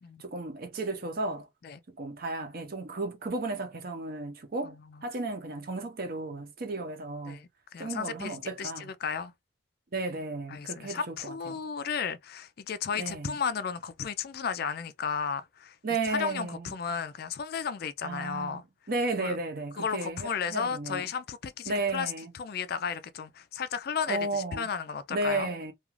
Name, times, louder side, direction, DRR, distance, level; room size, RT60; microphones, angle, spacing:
voice 1, 0.2-1.5 2.0-4.8 5.0-7.4 7.8-8.8 9.9-11.6 13.0-13.3 15.8-16.7 18.0-18.6 18.9-21.1 21.7-22.3 24.1-24.7 25.1-25.7, right 2 dB, 45° right, 0.6 m, -33 dB
voice 2, 4.6-5.0 7.3-9.3 10.5-15.8 16.1-18.6 19.2-19.4 19.8-25.5, left 6 dB, 50° left, 0.3 m, -34 dB
2.4 x 2.4 x 3.0 m
head